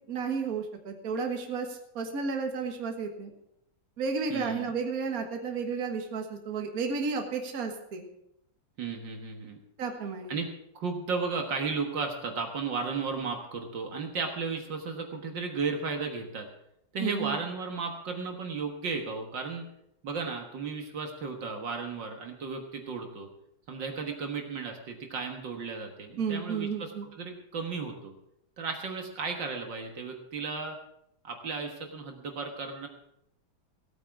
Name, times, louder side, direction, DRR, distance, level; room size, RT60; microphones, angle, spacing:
voice 1, 0.1-3.3 4.0-8.0 9.8-10.4 17.0-17.4 26.2-27.1, right 5 dB, 45° right, 4 dB, 1.9 m, -32 dB
voice 2, 4.3-4.7 8.8-9.6 10.3-10.5 10.7-16.5 16.9-19.7 20.0-23.3 23.7-28.1 28.6-30.8 31.2-32.9, right 4 dB, 65° right, 4 dB, 2.1 m, -34 dB
17.0 x 8.9 x 6.0 m, 0.77 s
omnidirectional pair, 2.2 m